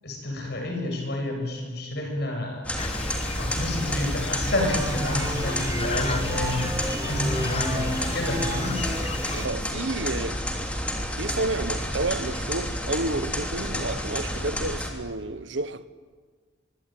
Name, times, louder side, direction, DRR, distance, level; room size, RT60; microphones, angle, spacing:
voice 1, 0.0-2.7 3.4-6.8 7.1-8.8, left 1 dB, 55° left, 7.4 m, -29 dB
sound 1, 2.6-14.9, equal, 5° left, 3.0 m, -30 dB
sound 2, 2.8-9.5, left 3 dB, 30° left, 1.0 m, -34 dB
sound 3, 4.4-9.5, right 2 dB, 20° right, 0.8 m, -34 dB
voice 2, 9.3-10.4 11.2-15.9, right 2 dB, 70° right, 1.2 m, -30 dB
25.0 x 23.0 x 9.2 m
head